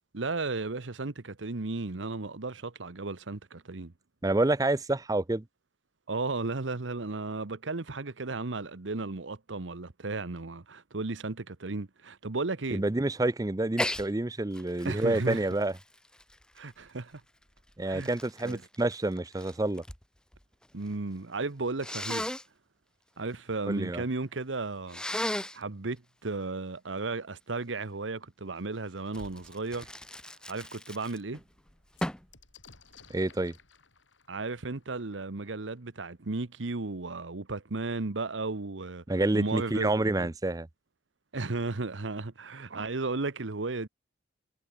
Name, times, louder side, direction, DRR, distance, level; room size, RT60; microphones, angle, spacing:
voice 1, 0.1-3.9 6.1-12.8 14.8-15.4 16.5-17.2 17.8-18.1 18.4-18.6 20.7-22.3 23.2-25.0 25.5-29.9 30.5-31.4 34.3-39.0 39.3-40.3 41.3-43.9, right 3 dB, 90° right, 1.1 m, -34 dB
voice 2, 4.2-5.4 12.7-15.7 17.8-19.8 23.7-24.0 33.1-33.5 39.1-40.7, right 2 dB, 20° right, 0.6 m, -28 dB
Sneeze, 13.7-14.1 14.5-16.9 17.6-20.0 20.3-20.9 21.8-22.4 24.9-25.6 29.1-31.4 32.0-32.3, left 1 dB, 5° left, 0.9 m, -36 dB
sound 1, 29.9-30.0 30.5-30.6 30.8-36.4 37.3-37.4 37.7-38.3, left 5 dB, 85° left, 5.4 m, -59 dB
head